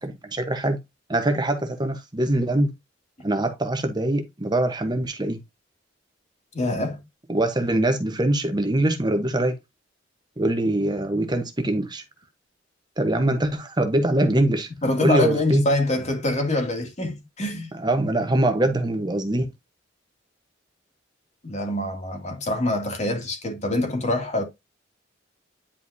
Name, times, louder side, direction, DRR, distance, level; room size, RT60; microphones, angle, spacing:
voice 1, 0.0-0.8 1.1-2.7 3.2-5.4 7.3-9.6 10.4-12.0 13.0-14.7 15.0-15.6 17.7-19.5, right 1 dB, 20° right, 1.0 m, -23 dB
voice 2, 6.5-7.0 14.8-17.7 21.4-24.4, left 2 dB, 35° left, 2.4 m, -25 dB
10.0 x 4.9 x 2.7 m
head